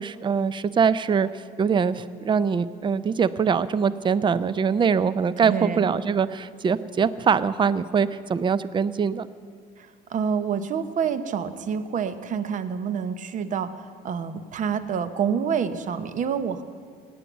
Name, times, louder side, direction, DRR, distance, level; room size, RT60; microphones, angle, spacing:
voice 1, 0.0-9.3, right 6 dB, 30° right, 16 dB, 0.5 m, -23 dB
voice 2, 5.4-5.9 9.8-13.7 14.0-16.6, right 7 dB, 50° right, 12 dB, 0.9 m, -27 dB
17.0 x 9.5 x 8.1 m, 2.1 s
cardioid pair, 110°, 17 cm